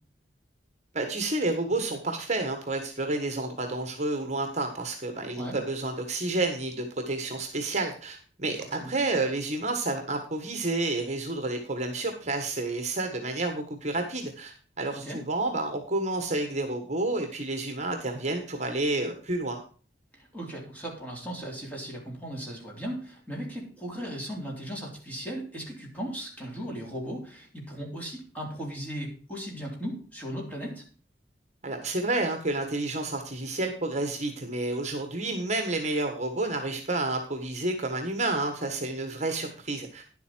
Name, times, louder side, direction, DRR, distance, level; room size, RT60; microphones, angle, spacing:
voice 1, 0.9-19.6 31.6-40.0, right 2 dB, 40° right, 5 dB, 1.5 m, -30 dB
voice 2, 20.2-30.8, equal, 10° left, -1 dB, 3.8 m, -37 dB
10.5 x 8.2 x 4.5 m, 0.40 s
head